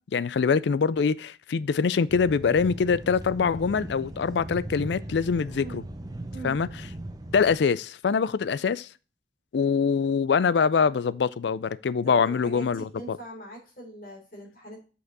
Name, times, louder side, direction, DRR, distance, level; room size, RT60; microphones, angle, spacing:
voice 1, 0.1-5.8 6.4-6.7 7.3-8.9 9.5-13.2, left 5 dB, 70° left, 0.4 m, -24 dB
sound 1, 2.1-7.6, right 1 dB, 20° right, 0.7 m, -38 dB
voice 2, 12.0-14.8, right 1 dB, 50° left, 3.7 m, -41 dB
6.5 x 5.3 x 4.0 m
head